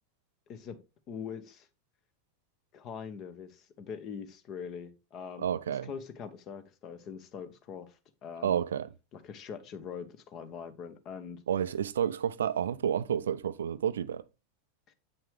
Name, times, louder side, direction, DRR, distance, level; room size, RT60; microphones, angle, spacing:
voice 1, 0.5-0.8 1.1-1.7 2.7-8.6 9.1-11.4 14.9-15.0, left 6 dB, 40° left, 1.0 m, -43 dB
voice 2, 5.4-5.9 8.4-8.9 11.5-14.2, right 9 dB, 70° right, 0.4 m, -30 dB
8.0 x 5.9 x 3.4 m
figure-of-eight pair, 85°, 0 cm